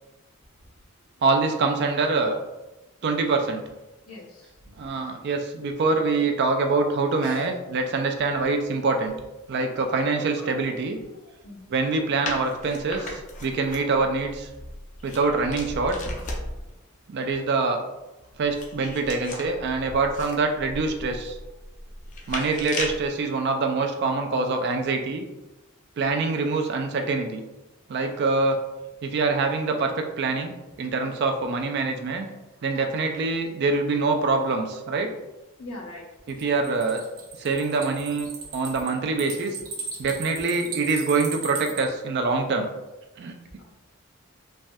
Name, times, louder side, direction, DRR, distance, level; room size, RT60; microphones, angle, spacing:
voice 1, 1.2-2.4 3.0-3.6 4.8-9.1 9.5-11.0 11.7-14.5 15.0-16.0 17.1-17.8 18.4-21.4 22.3-25.2 26.0-27.4 27.9-28.6 29.0-30.5 30.8-32.3 32.6-35.1 36.3-37.0 37.4-39.6 40.0-42.7 43.2-43.4, right 3 dB, 50° right, 4 dB, 0.3 m, -25 dB
voice 2, 4.1-4.5 7.2-7.6 10.4-10.7 11.2-11.7 35.6-36.1, left 2 dB, 90° left, 0 dB, 0.7 m, -40 dB
sound 1, 12.2-16.7 18.2-23.1, left 2 dB, 35° left, 0.4 m, -36 dB
sound 2, 36.3-41.8, right 6 dB, 75° right, 0.7 m, -36 dB
3.2 x 2.3 x 2.6 m, 1.0 s
head